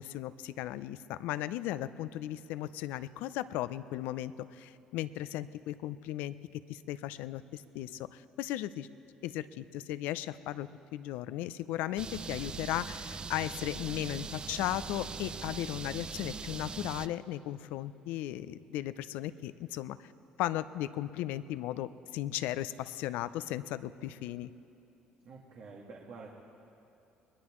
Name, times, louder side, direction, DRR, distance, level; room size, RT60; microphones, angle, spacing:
voice 1, 0.0-6.4 6.7-8.9 9.2-20.1 20.4-24.5, left 13 dB, 80° left, 15 dB, 0.5 m, -36 dB
sound 1, 12.0-17.1, right 5 dB, 30° right, 0.5 m, -41 dB
voice 2, 25.2-26.3, right 4 dB, 65° right, -2 dB, 1.9 m, -48 dB
22.5 x 20.0 x 3.1 m, 2.7 s
supercardioid pair, 80°, 3 cm